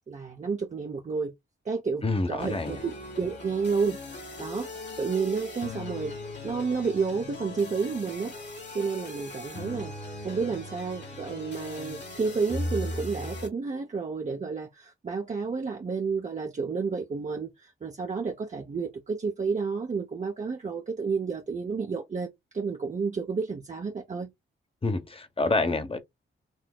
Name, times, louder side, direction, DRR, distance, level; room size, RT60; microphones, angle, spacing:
voice 1, 0.1-1.3 1.6-4.7 5.0-6.1 6.4-8.3 8.7-10.0 10.2-24.3, right 5 dB, 35° right, 0.8 m, -31 dB
voice 2, 2.0-2.8 24.8-26.0, left 2 dB, 25° left, 1.0 m, -27 dB
sound 1, 2.4-13.5, left 2 dB, 55° left, 1.9 m, -38 dB
6.2 x 2.7 x 2.3 m
cardioid pair, 80°, 21 cm